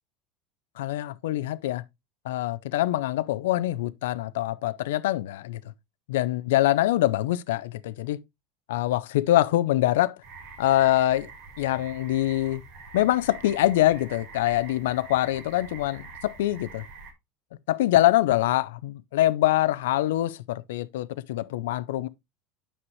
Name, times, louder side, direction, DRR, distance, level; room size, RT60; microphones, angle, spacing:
voice 1, 0.8-1.8 2.3-5.6 6.1-8.2 8.7-10.2 10.6-11.3 11.6-12.6 12.9-16.8 17.7-22.1, left 15 dB, 85° left, 0.5 m, -24 dB
sound 1, 10.2-17.1, right 4 dB, 65° right, 4.0 m, -45 dB
9.4 x 6.0 x 3.1 m
supercardioid pair, 100°, 0 cm